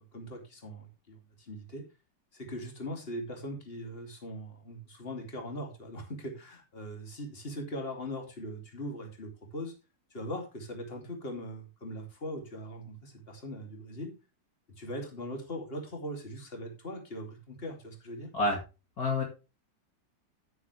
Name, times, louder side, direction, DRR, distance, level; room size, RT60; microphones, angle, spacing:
voice 1, 0.1-1.8 2.3-9.8 10.1-14.1 14.8-18.3, equal, 30° left, 3 dB, 3.1 m, -40 dB
voice 2, 18.3-18.6 19.0-19.2, left 2 dB, 55° left, 1 dB, 2.7 m, -27 dB
10.5 x 9.5 x 3.4 m, 0.29 s
omnidirectional pair, 1.9 m